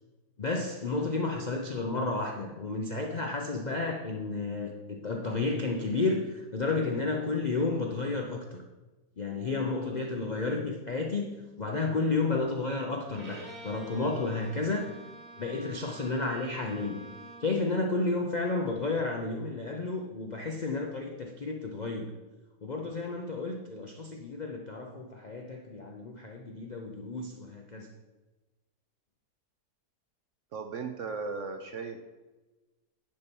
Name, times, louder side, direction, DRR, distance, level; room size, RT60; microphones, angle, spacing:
voice 1, 0.4-8.6 9.2-14.9 15.4-17.1 17.4-22.1 22.6-27.9, left 3 dB, 70° left, 2 dB, 0.4 m, -32 dB
Bowed string instrument, 13.1-17.6, right 2 dB, 30° right, 1.2 m, -48 dB
voice 2, 30.5-32.0, right 4 dB, 65° right, 6 dB, 0.7 m, -36 dB
10.0 x 4.3 x 5.3 m, 1.2 s
omnidirectional pair, 1.8 m